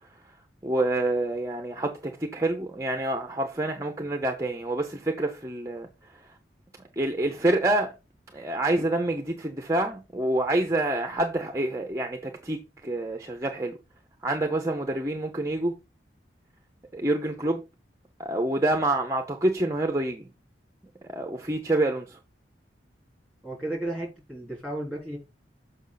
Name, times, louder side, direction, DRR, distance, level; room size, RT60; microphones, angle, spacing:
voice 1, 0.6-5.9 7.0-7.9 8.3-13.8 14.2-15.7 16.9-17.6 18.2-20.3 21.0-22.2, right 1 dB, 15° right, 0.8 m, -27 dB
voice 2, 23.4-25.2, right 1 dB, 5° left, 3.6 m, -33 dB
7.1 x 5.5 x 4.0 m
head